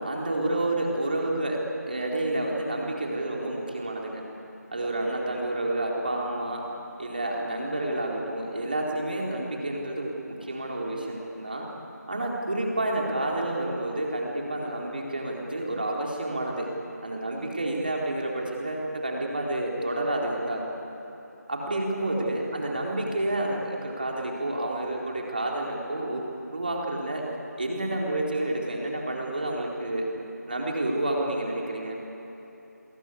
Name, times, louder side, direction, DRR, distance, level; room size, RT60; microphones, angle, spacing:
voice 1, 0.0-1.6 1.9-4.2 4.7-6.6 7.0-11.7 12.1-16.7 17.0-20.6 21.5-26.2 26.5-27.2 27.6-30.1 30.5-32.0, right 1 dB, 30° right, -1 dB, 3.9 m, -29 dB
29.5 x 22.5 x 8.5 m, 3.0 s
figure-of-eight pair, 170°, 10 cm